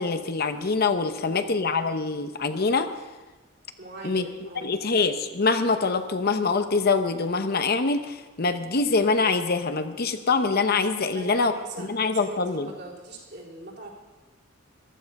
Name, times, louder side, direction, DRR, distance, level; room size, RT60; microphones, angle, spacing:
voice 1, 0.0-2.9 4.0-4.3 4.6-11.5 11.8-12.7, left 4 dB, 50° left, 8 dB, 0.8 m, -24 dB
voice 2, 1.2-1.5 3.8-4.7 11.1-13.9, right 2 dB, 55° right, -4 dB, 3.9 m, -41 dB
15.0 x 12.5 x 5.3 m, 1.2 s
head